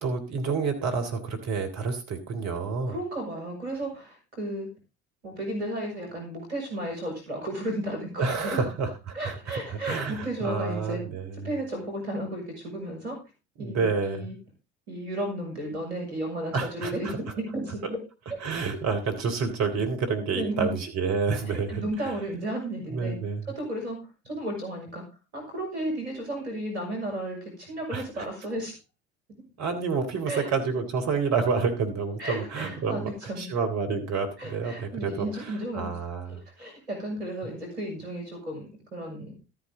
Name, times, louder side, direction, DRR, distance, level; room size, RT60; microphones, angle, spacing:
voice 1, 0.0-3.0 8.2-11.5 13.6-14.3 16.5-17.2 18.4-21.8 22.9-23.4 27.9-28.3 29.6-33.1 33.4-36.4, right 5 dB, 55° right, 6 dB, 3.6 m, -29 dB
voice 2, 2.9-4.7 5.2-8.6 9.1-11.0 11.4-13.2 13.6-14.4 14.9-18.0 20.3-20.7 21.5-23.2 23.5-24.0 24.2-25.0 25.3-28.7 30.3-30.5 32.2-33.5 34.4-35.9 36.3-39.3, right 1 dB, 85° right, 2 dB, 6.3 m, -33 dB
13.5 x 10.5 x 3.8 m, 0.28 s
hypercardioid pair, 65°, 32 cm